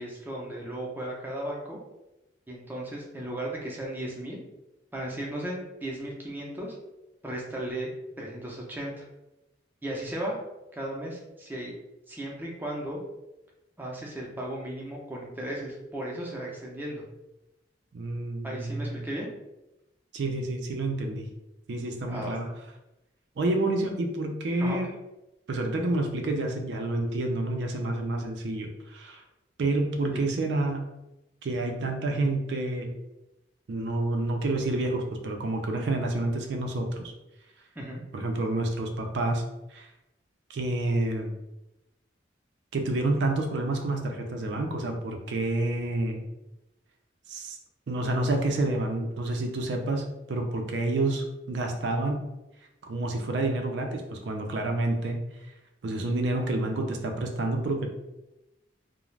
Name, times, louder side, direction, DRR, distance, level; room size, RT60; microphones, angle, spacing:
voice 1, 0.0-1.8 2.5-4.4 4.9-6.8 7.2-7.9 8.2-9.0 9.8-10.4 10.7-11.7 12.1-13.0 13.8-17.0 18.4-19.3 22.1-22.4 24.6-24.8 30.1-30.2 37.8-38.0, right 1 dB, 10° right, -2 dB, 0.5 m, -35 dB
voice 2, 17.9-19.0 20.1-21.3 21.7-22.5 23.4-24.9 25.5-29.2 29.6-30.8 31.4-32.9 33.7-37.1 38.1-39.4 39.7-39.9 40.5-41.3 42.7-46.2 47.3-47.6 47.9-52.2 52.8-55.2 55.8-57.9, right 2 dB, 75° right, 3 dB, 0.4 m, -29 dB
2.4 x 2.0 x 3.1 m, 0.95 s
head